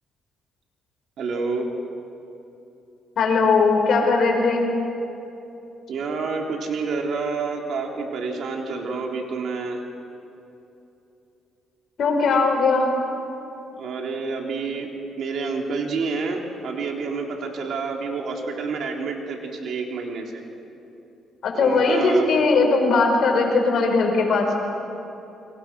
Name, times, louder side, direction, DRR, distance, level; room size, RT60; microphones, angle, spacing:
voice 1, 1.2-1.7 5.9-9.8 13.8-14.9 15.2-20.4 21.5-22.3, right 4 dB, 65° right, 1 dB, 3.8 m, -28 dB
voice 2, 3.2-4.7 12.0-12.9 21.4-24.6, left 3 dB, 65° left, 2 dB, 5.9 m, -19 dB
28.5 x 24.0 x 6.3 m, 2.9 s
cardioid pair, 90°, 0 cm